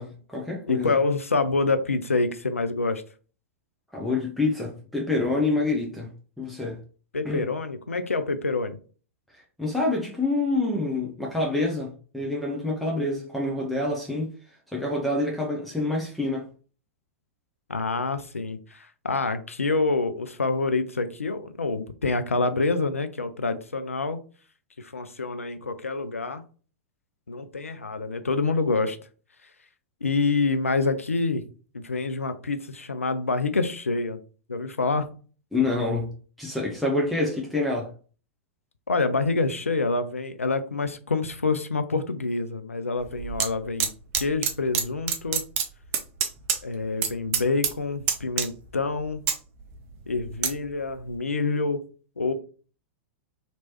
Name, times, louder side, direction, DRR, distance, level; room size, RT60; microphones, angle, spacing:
voice 1, 0.0-0.9 3.9-6.8 7.2-7.4 9.3-14.3 14.7-16.5 35.5-37.9, left 2 dB, ahead, 0.7 m, -27 dB
voice 2, 0.7-3.0 7.1-8.8 17.7-24.2 24.8-26.4 27.3-29.0 30.0-31.4 31.7-34.2 34.5-35.1 38.9-43.9 44.2-45.4 46.6-49.2 50.1-51.8 52.2-52.3, left 3 dB, 80° left, 0.4 m, -27 dB
sound 1, 43.0-43.5 43.8-44.8 45.1-46.6 46.8-47.1 47.3-47.8 48.1-48.7 49.1-50.5 51.0-51.1, right 8 dB, 35° right, 0.6 m, -26 dB
3.0 x 3.0 x 2.8 m
figure-of-eight pair, 100°, 7 cm